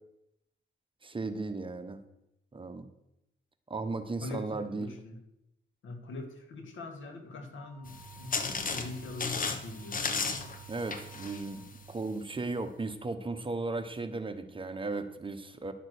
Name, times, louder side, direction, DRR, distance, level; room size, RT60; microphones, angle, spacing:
voice 1, 1.0-2.0 2.5-2.9 3.7-4.9 10.7-11.6 11.9-15.7, right 3 dB, 25° right, 9 dB, 1.0 m, -36 dB
voice 2, 4.2-5.2 5.8-10.1, left 2 dB, 75° left, 5 dB, 1.9 m, -42 dB
Wind instrument woodwind instrument, 7.6-11.8, right 3 dB, 5° left, 4.9 m, -58 dB
sound 1, 7.8-12.2, left 4 dB, 45° left, 1.2 m, -35 dB
11.0 x 6.5 x 6.4 m, 0.85 s
cardioid pair, 95°, 20 cm